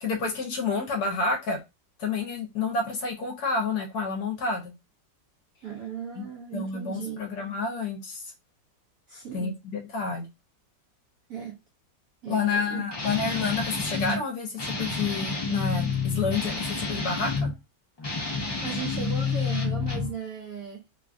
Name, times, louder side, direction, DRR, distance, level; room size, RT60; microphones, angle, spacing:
voice 1, 0.0-1.6 2.0-4.7 6.2-6.3 6.5-8.3 9.3-10.3 12.3-17.5, left 4 dB, 65° left, 1.1 m, -29 dB
voice 2, 5.6-7.2 9.1-9.6 11.3-11.6 12.2-12.8 18.6-20.9, right 7 dB, 70° right, 0.8 m, -36 dB
Guitar, 12.9-14.2 14.6-17.5 18.0-20.1, left 4 dB, 30° left, 0.5 m, -29 dB
3.2 x 2.3 x 2.4 m
omnidirectional pair, 2.0 m